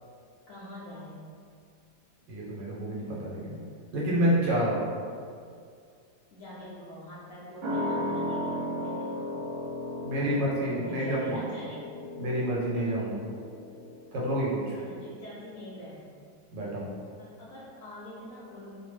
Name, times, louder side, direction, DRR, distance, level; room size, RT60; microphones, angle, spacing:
voice 1, 0.5-1.4 6.3-9.2 10.2-11.9 14.8-16.2 17.2-18.7, left 1 dB, 65° left, -9 dB, 0.8 m, -44 dB
voice 2, 2.3-3.6 3.9-4.8 10.0-11.4 12.2-13.3 14.1-14.8 16.5-16.9, right 1 dB, 85° right, -5 dB, 1.4 m, -28 dB
sound 1, 7.6-14.7 15.0-15.1, left 1 dB, 65° right, 1.0 m, -35 dB
3.1 x 2.0 x 3.2 m, 2.3 s
omnidirectional pair, 1.9 m